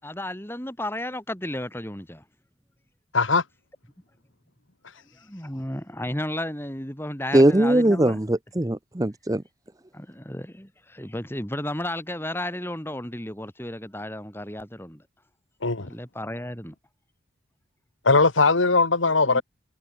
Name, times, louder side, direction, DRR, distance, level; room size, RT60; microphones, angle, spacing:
voice 1, 0.0-2.2 5.1-8.2 9.9-15.0 15.8-16.7 19.3-19.4, left 1 dB, 10° left, 4.2 m, -33 dB
voice 2, 3.1-3.4 15.6-15.9 18.0-19.4, left 3 dB, 75° left, 1.9 m, -19 dB
voice 3, 7.3-9.4, right 1 dB, 15° right, 0.7 m, -20 dB
head